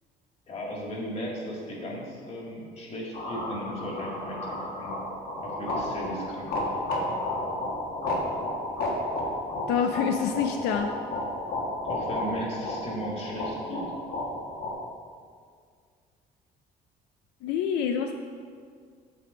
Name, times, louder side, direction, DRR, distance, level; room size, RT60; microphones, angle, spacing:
voice 1, 0.5-4.9 5.4-6.5 6.9-7.1 11.8-13.8, equal, 40° left, -2 dB, 1.9 m, -36 dB
sound 1, 3.1-14.7, left 1 dB, 65° left, 1.4 m, -32 dB
voice 2, 9.7-10.9 17.4-18.1, left 7 dB, 85° left, 5 dB, 0.4 m, -26 dB
8.4 x 3.6 x 6.0 m, 2.1 s
cardioid pair, 110°, 17 cm